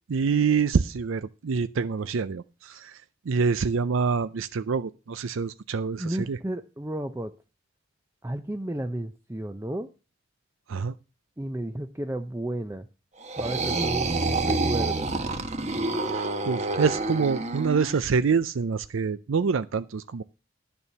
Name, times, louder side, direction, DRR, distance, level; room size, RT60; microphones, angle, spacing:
voice 1, 0.1-6.4 10.7-10.9 16.0-20.2, right 5 dB, 75° right, 14 dB, 0.5 m, -26 dB
voice 2, 6.0-7.3 8.2-9.9 11.4-12.9 13.4-15.1, right 1 dB, 15° right, 7 dB, 0.5 m, -33 dB
sound 1, 13.2-18.0, right 3 dB, 35° right, 1.1 m, -28 dB
11.0 x 6.9 x 5.8 m, 0.31 s
head